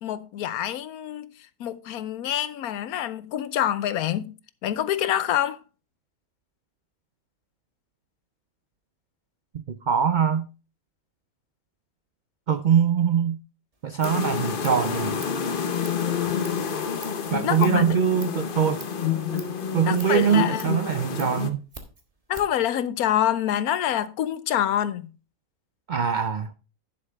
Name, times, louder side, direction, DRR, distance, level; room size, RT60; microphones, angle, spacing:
voice 1, 0.0-1.3 1.6-4.3 4.6-5.6 17.4-17.8 19.8-20.7 22.3-25.1, left 11 dB, 85° left, 1.2 m, -26 dB
voice 2, 9.7-10.5 12.5-13.4 13.8-15.2 17.3-18.8 19.7-21.6 25.9-26.5, right 8 dB, 85° right, 0.4 m, -23 dB
Scissors, 13.7-22.7, right 2 dB, 25° right, 1.4 m, -47 dB
sound 1, 14.0-21.5, left 7 dB, 45° left, 0.9 m, -28 dB
11.0 x 7.0 x 3.4 m
omnidirectional pair, 1.5 m